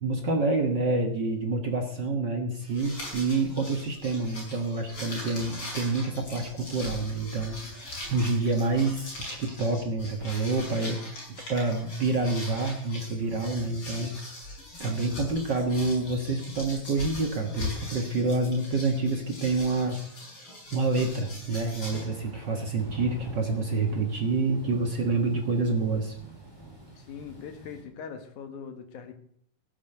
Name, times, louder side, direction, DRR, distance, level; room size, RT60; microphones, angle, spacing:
voice 1, 0.0-11.0 11.5-14.4 14.8-20.1 20.7-26.1, right 3 dB, 45° right, 3 dB, 1.5 m, -28 dB
sound 1, 2.6-22.1, left 2 dB, 35° left, 6.9 m, -41 dB
Thunder / Rain, 21.8-27.8, right 1 dB, 5° right, 4.2 m, -46 dB
voice 2, 27.0-29.1, left 7 dB, 65° left, 6 dB, 2.9 m, -41 dB
16.0 x 7.4 x 7.9 m, 0.67 s
omnidirectional pair, 4.0 m